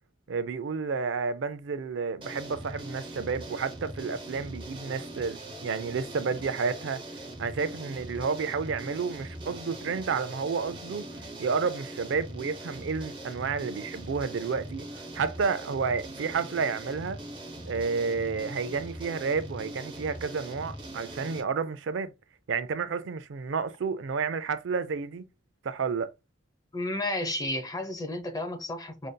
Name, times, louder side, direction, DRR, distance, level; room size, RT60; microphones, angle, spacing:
voice 1, 0.3-7.0 7.4-11.0 11.4-14.8 15.1-17.2 17.7-22.1 22.5-25.2 25.6-26.1, right 5 dB, 70° right, 0.4 m, -31 dB
sound 1, 2.2-21.4, right 1 dB, 25° right, 0.8 m, -41 dB
voice 2, 26.7-29.1, left 1 dB, 20° left, 0.7 m, -32 dB
5.1 x 2.6 x 2.2 m
head